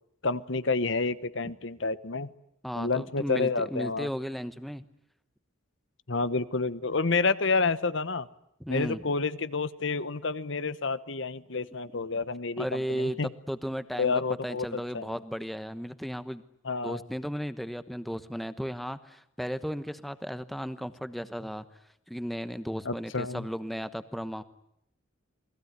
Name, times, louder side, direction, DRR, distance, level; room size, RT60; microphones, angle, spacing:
voice 1, 0.2-2.3 2.7-4.1 6.1-8.3 8.7-13.3 14.0-15.1 16.6-17.0 22.9-23.4, left 4 dB, 60° left, 15 dB, 1.1 m, -29 dB
voice 2, 2.6-4.8 8.6-9.1 12.6-13.2 13.5-16.4 16.8-21.6 22.1-24.4, equal, ahead, 12 dB, 1.1 m, -35 dB
28.5 x 21.0 x 9.5 m, 0.75 s
head